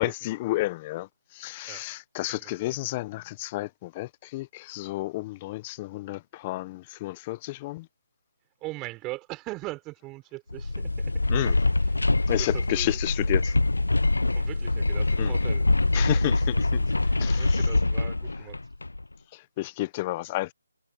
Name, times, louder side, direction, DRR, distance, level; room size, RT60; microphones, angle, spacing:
voice 1, 0.0-7.9 11.3-11.6 12.3-13.6 15.2-15.3 15.9-16.9 17.2-17.6 19.3-20.5, left 18 dB, 25° left, 1.0 m, -31 dB
voice 2, 2.3-2.7 8.6-11.1 11.8-12.9 14.3-16.1 16.9-18.6, right 20 dB, 15° right, 5.1 m, -41 dB
sound 1, 10.5-19.0, left 2 dB, 85° left, 0.3 m, -24 dB
figure-of-eight pair, 155°, 0 cm